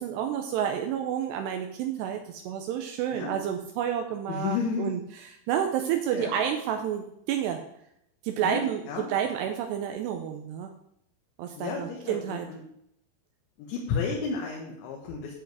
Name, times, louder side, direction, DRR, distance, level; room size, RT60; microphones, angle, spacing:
voice 1, 0.0-5.0 5.5-7.6 8.2-8.8 9.1-10.7 11.4-12.5, right 9 dB, 90° right, 5 dB, 2.4 m, -30 dB
voice 2, 4.3-4.9 6.1-6.3 8.4-8.6 8.9-9.1 11.6-12.6 13.6-15.4, left 5 dB, 70° left, -1 dB, 3.4 m, -32 dB
10.5 x 7.2 x 4.7 m, 0.75 s
omnidirectional pair, 5.8 m